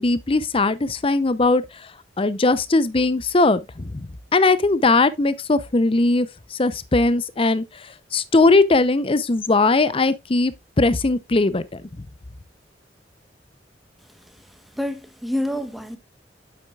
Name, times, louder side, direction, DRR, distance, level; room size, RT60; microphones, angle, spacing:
voice 1, 0.0-1.6 2.2-4.1 4.3-7.6 8.1-11.6 12.0-12.1, left 3 dB, 30° left, 0.6 m, -19 dB
voice 2, 14.3-16.0, left 1 dB, ahead, 1.1 m, -29 dB
8.7 x 7.9 x 2.4 m
head